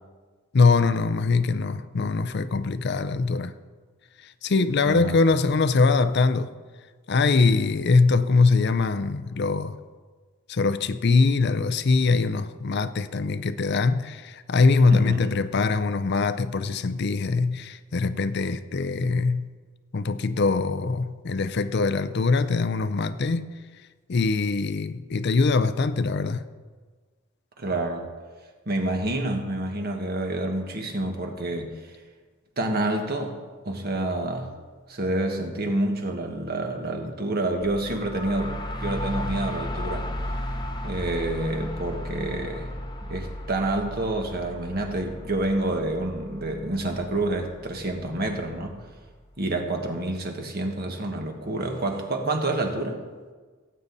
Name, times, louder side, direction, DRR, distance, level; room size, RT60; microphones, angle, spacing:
voice 1, 0.5-3.5 4.2-6.5 7.1-9.8 10.5-19.5 19.9-23.5 24.1-26.4, left 4 dB, 50° left, 0.5 m, -22 dB
voice 2, 4.8-5.2 14.9-15.3 27.6-28.1 28.6-31.8 32.6-33.4 33.6-34.5 34.9-40.1 40.8-42.7 43.0-48.8 49.4-53.0, right 2 dB, 45° right, 1.5 m, -28 dB
sound 1, 37.6-49.3, left 1 dB, 20° left, 0.7 m, -35 dB
18.0 x 8.6 x 4.1 m
head